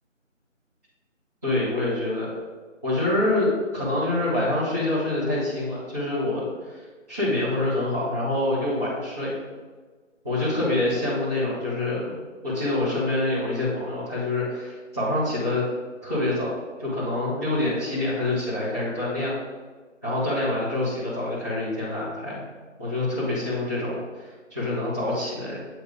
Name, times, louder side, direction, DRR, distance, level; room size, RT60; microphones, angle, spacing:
voice 1, 1.4-2.3 2.8-6.8 7.1-9.4 10.2-15.6 16.0-16.5 16.8-19.4 20.0-22.4 22.8-25.6, left 2 dB, 10° left, -14 dB, 1.0 m, -26 dB
8.2 x 3.2 x 5.0 m, 1.4 s
figure-of-eight pair, 165°, 39 cm